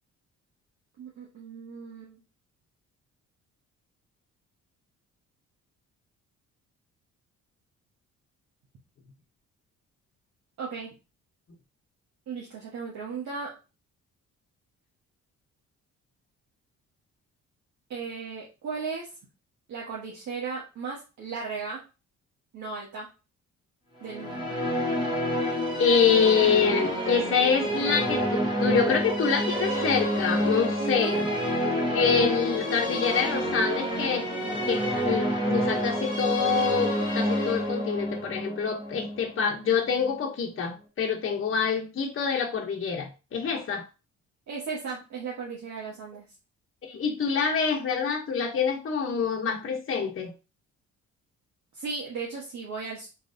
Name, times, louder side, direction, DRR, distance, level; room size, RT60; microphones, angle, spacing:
voice 1, 1.0-2.2 10.6-10.9 12.3-13.5 17.9-19.1 19.7-21.8 22.5-23.1 24.0-24.6 30.8-31.2 44.5-46.2 51.7-53.1, right 5 dB, 65° right, -4 dB, 1.3 m, -36 dB
sound 1, 24.0-40.1, equal, 15° right, 1.6 m, -28 dB
voice 2, 25.8-31.3 31.9-43.8 46.9-50.3, left 6 dB, 45° left, 1 dB, 1.0 m, -26 dB
4.6 x 3.2 x 2.7 m, 0.30 s
cardioid pair, 90°, 30 cm